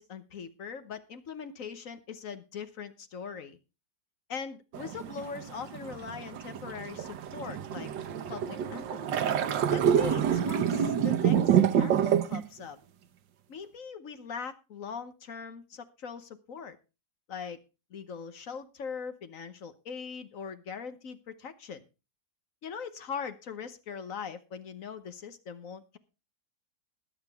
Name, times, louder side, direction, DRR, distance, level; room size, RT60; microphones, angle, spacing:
voice 1, 0.0-3.6 4.3-7.9 8.3-9.3 9.7-12.8 13.5-16.8 17.3-17.6 17.9-21.8 22.6-26.0, left 6 dB, 55° left, 11 dB, 1.2 m, -41 dB
sound 1, 4.7-12.4, right 8 dB, 90° right, 1.6 m, -27 dB
20.5 x 7.3 x 3.5 m, 0.30 s
omnidirectional pair, 1.9 m